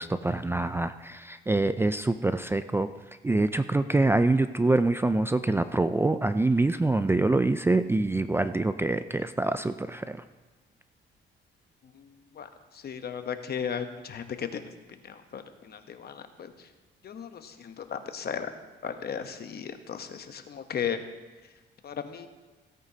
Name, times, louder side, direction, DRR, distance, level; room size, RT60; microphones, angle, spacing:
voice 1, 0.0-2.9 3.2-10.2, right 2 dB, 10° right, 10 dB, 0.4 m, -25 dB
voice 2, 11.9-12.5 12.7-14.7 15.0-16.7 17.0-18.5 18.8-21.0 21.8-22.3, left 7 dB, 55° left, 8 dB, 1.0 m, -36 dB
16.5 x 9.1 x 2.8 m, 1.3 s
cardioid pair, 90°, 20 cm